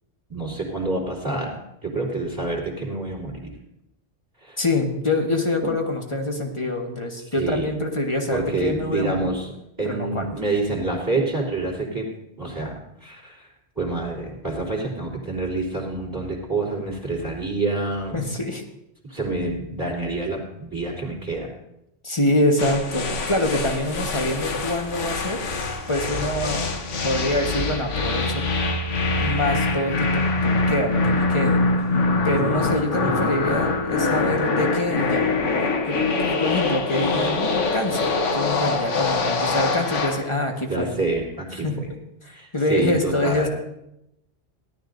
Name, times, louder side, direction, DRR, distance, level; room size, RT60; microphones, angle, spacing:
voice 1, 0.3-3.6 4.4-4.6 7.3-7.7 8.3-9.5 9.8-12.1 12.4-13.5 13.8-18.2 19.1-21.5 33.0-33.2 40.7-41.9 42.3-43.5, right 2 dB, 15° right, -4 dB, 3.1 m, -27 dB
voice 2, 4.6-9.3 9.8-10.2 18.1-18.6 22.0-25.4 25.9-26.7 27.0-28.4 29.2-31.7 32.2-35.3 35.9-36.0 36.2-40.9 41.6-41.8 42.2-43.5, left 1 dB, 25° left, 2 dB, 1.4 m, -25 dB
sound 1, 22.6-40.3, left 3 dB, 85° left, 1.4 m, -24 dB
18.0 x 12.0 x 2.6 m, 0.84 s
omnidirectional pair, 1.2 m